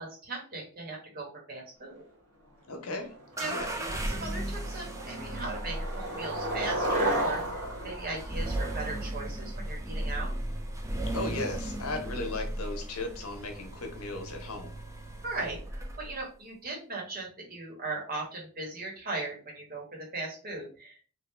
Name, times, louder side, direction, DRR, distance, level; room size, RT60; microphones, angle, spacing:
voice 1, 0.0-2.0 3.4-10.3 15.2-21.1, right 3 dB, 40° right, -1 dB, 1.4 m, -38 dB
voice 2, 2.7-3.1 3.5-3.7 11.1-14.7, left 2 dB, 80° left, 4 dB, 0.9 m, -36 dB
Skateboard, 3.3-3.4 3.8-4.1 4.5-9.1, right 1 dB, 80° right, 1.4 m, -33 dB
sound 1, 3.4-16.2, right 1 dB, 15° right, 0.4 m, -36 dB
3.5 x 2.5 x 3.3 m, 0.39 s
head